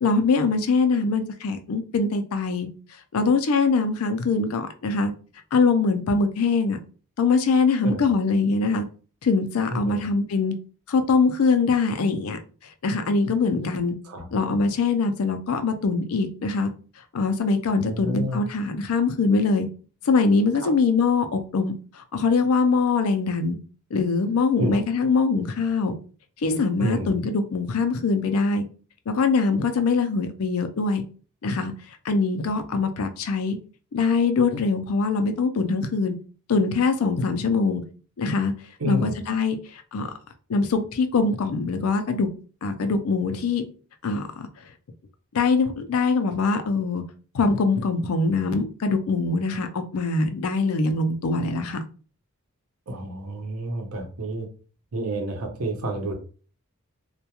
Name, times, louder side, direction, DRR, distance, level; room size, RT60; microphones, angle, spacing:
voice 1, 0.0-2.7 3.1-5.1 5.5-6.8 7.2-8.8 9.2-10.5 10.9-12.4 12.8-14.0 14.3-16.7 17.1-19.7 20.1-23.6 23.9-26.0 26.4-28.6 29.1-31.0 31.4-31.7 32.0-33.6 33.9-36.1 36.5-37.8 38.2-38.5 38.9-39.6 39.9-40.1 40.5-42.3 42.6-43.6 44.0-44.5 45.3-47.0 47.3-51.8, left 4 dB, 80° left, 0.4 m, -23 dB
voice 2, 9.7-10.0 14.0-14.3 17.8-18.4 20.6-20.7 24.6-24.7 26.8-27.1 38.8-39.1 52.9-54.5 54.9-56.1, right 1 dB, 85° right, 0.7 m, -29 dB
2.2 x 2.2 x 2.8 m
head